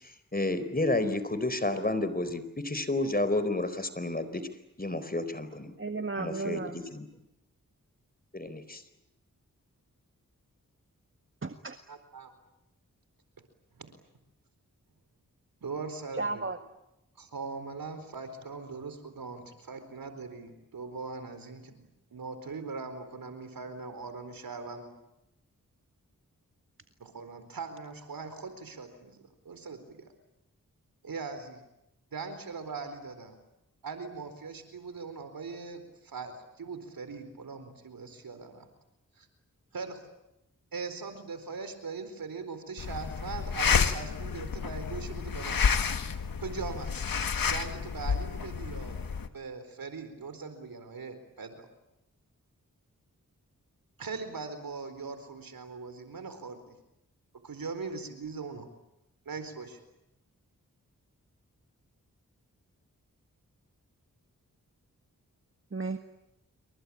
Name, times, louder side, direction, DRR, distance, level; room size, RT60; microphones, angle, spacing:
voice 1, 0.3-4.5 4.8-5.7 6.2-7.1 8.3-8.8, left 2 dB, 25° left, 12 dB, 4.3 m, -31 dB
voice 2, 5.8-6.8 11.4-11.8 16.2-16.6 65.7-66.0, right 3 dB, 35° right, 7 dB, 1.8 m, -33 dB
voice 3, 11.9-12.3 13.8-13.9 15.6-16.4 17.1-24.9 27.0-29.2 29.4-30.1 31.0-31.6 32.1-33.4 33.8-38.7 39.2-39.3 39.7-40.0 40.7-45.6 46.4-46.9 47.5-51.7 54.0-56.8 57.4-58.7 59.3-59.8, right 4 dB, 85° right, 9 dB, 4.2 m, -40 dB
sound 1, 42.8-49.3, left 6 dB, 80° left, 1.7 m, -30 dB
28.0 x 23.5 x 8.7 m, 0.88 s
cardioid pair, 40°, 34 cm